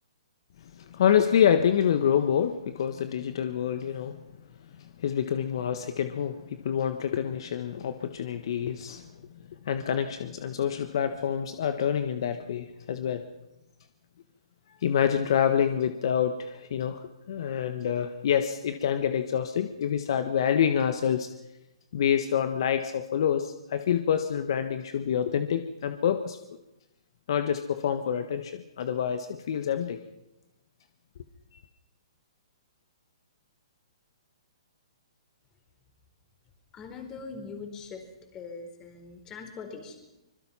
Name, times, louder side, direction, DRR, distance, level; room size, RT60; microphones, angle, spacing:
voice 1, 0.8-4.2 4.8-9.1 9.6-13.2 14.8-17.0 17.3-21.3 21.9-26.4 27.3-30.0, left 8 dB, 60° left, 9 dB, 1.4 m, -27 dB
voice 2, 36.7-38.0 38.3-40.0, left 4 dB, 20° left, 6 dB, 4.4 m, -41 dB
25.5 x 21.5 x 5.7 m, 0.94 s
hypercardioid pair, 135°, 3 cm